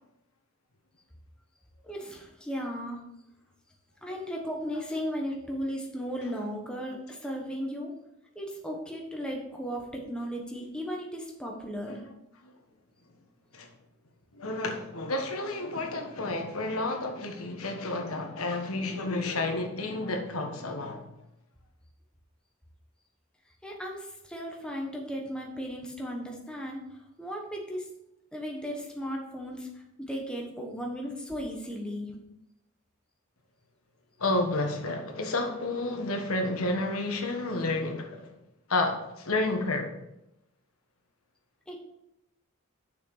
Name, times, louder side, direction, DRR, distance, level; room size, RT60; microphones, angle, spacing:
voice 1, 1.8-3.0 4.0-7.9 8.3-12.0 23.6-27.9 28.3-32.1 41.7-41.8, equal, 5° left, 1.2 m, -36 dB
voice 2, 14.3-21.1 34.2-38.3 38.7-39.9, left 2 dB, 80° left, 1.4 m, -30 dB
6.8 x 6.4 x 4.9 m
head